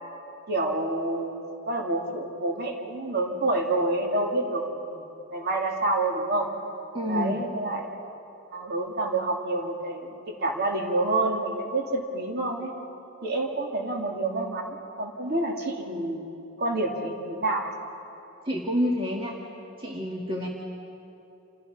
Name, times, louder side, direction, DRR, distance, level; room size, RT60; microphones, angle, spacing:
voice 1, 0.5-1.4 1.7-5.0 5.3-6.5 7.1-7.8 8.5-12.7 13.2-16.2 16.6-17.7, right 2 dB, 50° right, 0 dB, 3.0 m, -28 dB
voice 2, 6.9-7.3 18.4-19.4 19.8-20.5, equal, 25° right, -1 dB, 1.7 m, -28 dB
29.0 x 27.5 x 5.8 m, 2.9 s
head